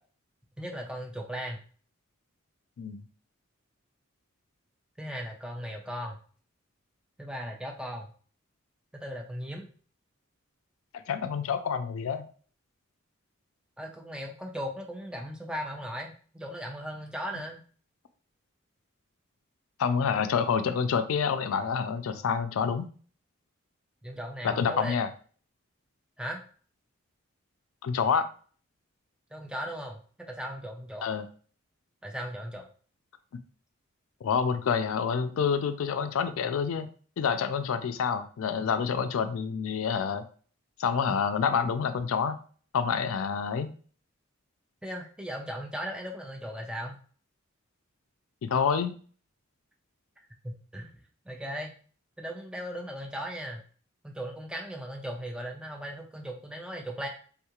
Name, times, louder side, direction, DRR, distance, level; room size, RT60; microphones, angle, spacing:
voice 1, 0.6-1.6 5.0-6.2 7.2-8.1 8.9-9.7 13.8-17.6 24.0-25.0 26.2-26.4 29.3-31.1 32.0-32.7 44.8-47.0 50.4-51.7 52.2-53.6 54.0-57.1, equal, 5° right, 1 dB, 0.4 m, -37 dB
voice 2, 11.1-12.2 19.8-22.9 24.4-25.1 27.8-28.3 31.0-31.2 34.2-36.9 37.2-40.2 40.8-42.4 42.7-43.7 48.4-48.9, left 6 dB, 75° left, 10 dB, 0.3 m, -27 dB
3.5 x 2.3 x 2.9 m, 0.42 s
head